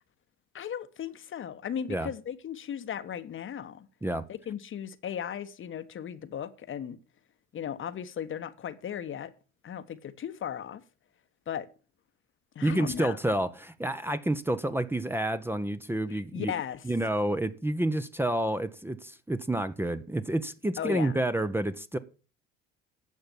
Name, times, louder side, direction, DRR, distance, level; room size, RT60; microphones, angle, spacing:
voice 1, 0.5-3.9 4.3-7.0 7.5-9.3 9.6-10.8 11.5-11.7 12.5-13.2 16.1-16.8 20.8-21.2, left 9 dB, 35° left, 1.2 m, -36 dB
voice 2, 12.6-16.5 16.8-22.0, right 1 dB, 5° right, 0.9 m, -29 dB
12.0 x 7.8 x 7.2 m
figure-of-eight pair, 60°, 34 cm